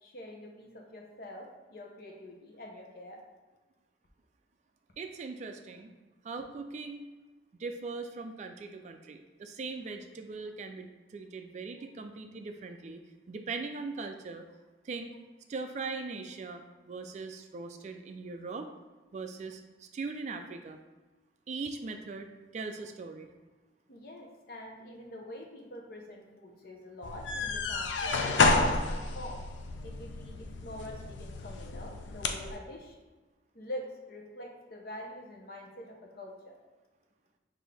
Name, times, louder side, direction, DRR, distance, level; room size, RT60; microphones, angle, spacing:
voice 1, 0.0-3.2 23.9-29.4 29.8-33.0 33.5-36.5, left 1 dB, 55° left, 0 dB, 0.8 m, -45 dB
voice 2, 5.0-5.9 6.2-7.1 7.6-13.0 13.3-14.4 14.8-15.1 15.5-18.7 19.1-20.8 21.5-22.3 22.5-23.3, right 4 dB, 40° right, 6 dB, 0.3 m, -40 dB
sound 1, 27.0-32.5, left 3 dB, 90° left, 0.4 m, -30 dB
5.8 x 2.6 x 3.4 m, 1.2 s
head